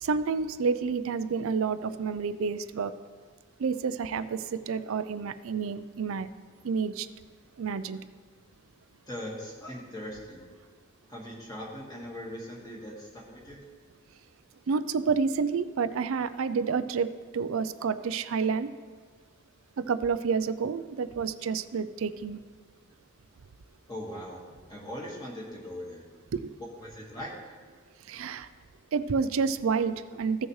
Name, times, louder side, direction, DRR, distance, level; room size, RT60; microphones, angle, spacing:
voice 1, 0.0-2.9 3.6-6.3 6.6-7.1 7.6-8.0 14.7-18.7 19.8-22.4 26.3-26.6 28.1-28.5 28.9-30.5, right 5 dB, 75° right, 13 dB, 0.4 m, -29 dB
voice 2, 9.1-10.4 11.1-13.6 23.9-26.0 26.8-27.5, equal, 20° left, -3 dB, 1.7 m, -40 dB
15.5 x 6.3 x 3.2 m, 1.5 s
head